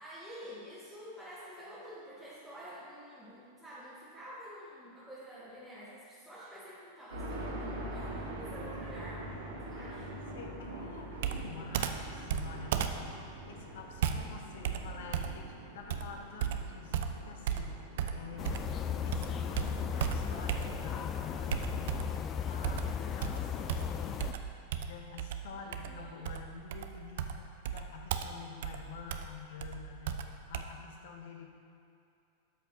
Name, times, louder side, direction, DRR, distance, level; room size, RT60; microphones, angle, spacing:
voice 1, 0.0-9.2 9.6-10.1 25.5-26.3, equal, 5° left, -12 dB, 1.8 m, -48 dB
sound 1, 7.1-21.1, right 1 dB, 70° right, 1.4 m, -45 dB
voice 2, 9.7-18.8 19.0-22.2 22.4-22.9 23.1-24.3 24.9-31.5, left 6 dB, 55° left, 2 dB, 0.8 m, -48 dB
Computer keyboard, 11.2-18.8 19.1-21.0 21.5-22.2 22.6-30.6, right 9 dB, 55° right, 0.4 m, -36 dB
sound 2, 18.4-24.3, left 8 dB, 25° left, 0.3 m, -36 dB
12.5 x 5.1 x 2.8 m, 2.5 s
figure-of-eight pair, 90°, 0 cm